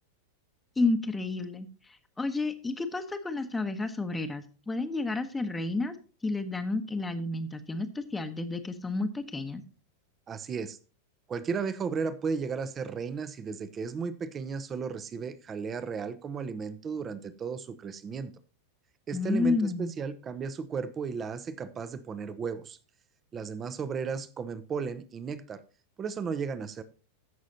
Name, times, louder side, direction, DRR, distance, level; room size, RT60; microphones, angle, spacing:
voice 1, 0.8-1.7 2.2-5.9 6.2-9.6 19.1-19.9, left 3 dB, 10° left, 9 dB, 1.1 m, -30 dB
voice 2, 10.3-10.8 11.3-18.3 19.1-22.8 23.3-25.6 26.0-26.8, right 5 dB, 25° right, 14 dB, 0.9 m, -34 dB
15.5 x 6.3 x 2.8 m, 0.36 s
figure-of-eight pair, 90°, 0 cm